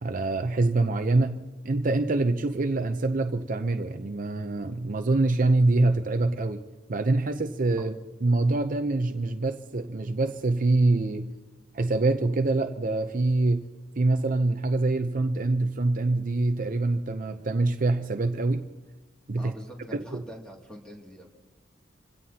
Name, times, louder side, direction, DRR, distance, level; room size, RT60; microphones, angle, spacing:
voice 1, 0.0-6.6 6.9-7.9 8.2-11.3 11.7-13.7 14.0-18.7 19.3-19.5 19.9-20.2, right 2 dB, 45° right, 0.7 m, -25 dB
voice 2, 19.4-21.3, equal, 5° left, 2.4 m, -44 dB
26.5 x 17.0 x 2.9 m
head